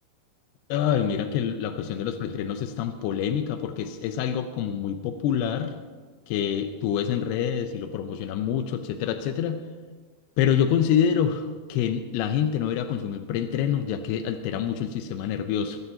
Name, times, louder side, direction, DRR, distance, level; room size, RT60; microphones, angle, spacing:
voice 1, 0.7-5.7 6.3-9.6 10.4-15.8, left 8 dB, 85° left, 8 dB, 2.3 m, -26 dB
21.5 x 13.5 x 2.8 m, 1.4 s
omnidirectional pair, 5.4 m